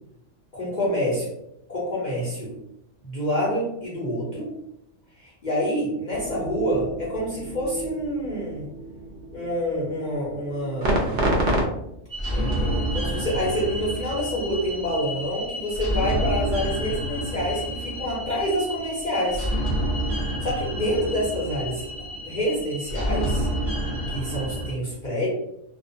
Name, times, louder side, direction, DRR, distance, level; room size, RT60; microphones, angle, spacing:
voice 1, 0.5-1.3 1.7-2.5 3.0-4.5 5.2-8.7 9.3-11.2 12.3-19.5 20.1-21.8 22.2-23.5 24.1-25.3, equal, 50° left, -6 dB, 0.6 m, -27 dB
sound 1, 6.1-11.7, right 1 dB, 60° right, 0.7 m, -29 dB
sound 2, 12.1-24.7, equal, 25° right, 0.7 m, -29 dB
2.3 x 2.1 x 2.6 m, 0.80 s
omnidirectional pair, 1.3 m